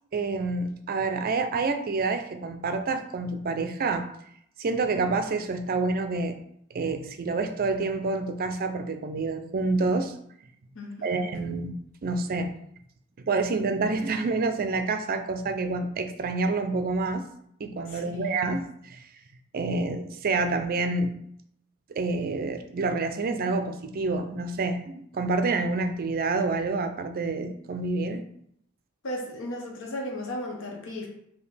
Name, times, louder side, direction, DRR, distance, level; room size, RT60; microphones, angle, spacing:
voice 1, 0.1-4.0 4.6-6.4 6.7-10.1 11.0-11.7 12.0-12.5 13.3-17.2 17.6-19.1 19.5-21.1 22.0-28.2, right 3 dB, 45° right, 8 dB, 0.4 m, -28 dB
voice 2, 10.7-11.2 17.9-18.5 29.0-31.1, left 1 dB, 60° left, 1 dB, 0.8 m, -35 dB
5.0 x 2.8 x 3.2 m, 0.71 s
head